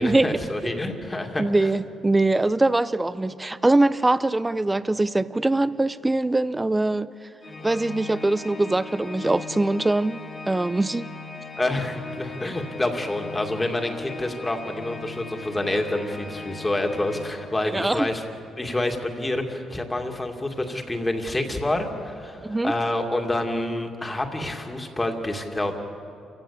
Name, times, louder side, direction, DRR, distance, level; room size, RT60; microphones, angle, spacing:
voice 1, 0.0-1.4 11.6-18.2 18.6-25.8, left 1 dB, 15° left, 2.4 m, -27 dB
voice 2, 1.4-7.1 7.6-11.1 17.7-18.1 22.4-22.7, right 2 dB, 15° right, 0.6 m, -22 dB
Organ, 7.4-18.0, left 4 dB, 35° left, 1.9 m, -39 dB
28.0 x 16.0 x 8.5 m
cardioid pair, 90°, 0 cm